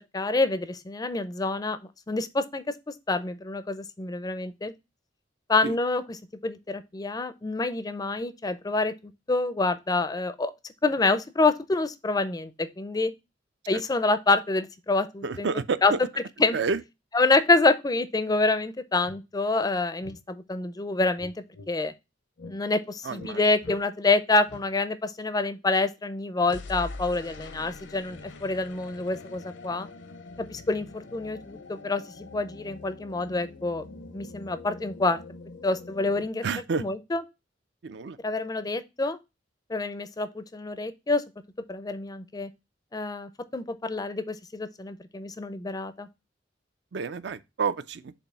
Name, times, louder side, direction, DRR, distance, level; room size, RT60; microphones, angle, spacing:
voice 1, 0.1-1.8 2.1-4.7 5.5-6.0 6.4-10.5 10.8-13.1 13.7-15.5 15.8-15.9 16.4-16.6 17.1-21.9 22.5-29.9 30.4-33.8 34.1-35.2 35.6-36.4 36.8-37.2 38.2-39.2 39.7-41.2 41.7-42.5 42.9-46.1, left 3 dB, 20° left, 0.4 m, -27 dB
voice 2, 15.2-16.0 16.5-16.8 23.0-23.4 36.4-36.8 37.8-38.2 46.9-48.1, right 5 dB, 65° right, 0.5 m, -29 dB
sound 1, 19.0-19.2 20.0-20.2 21.2-21.7 22.4-22.6 23.1-23.4 23.6-23.8 24.5-24.7 26.5-36.3, left 3 dB, 75° left, 0.7 m, -44 dB
7.0 x 2.7 x 5.4 m
head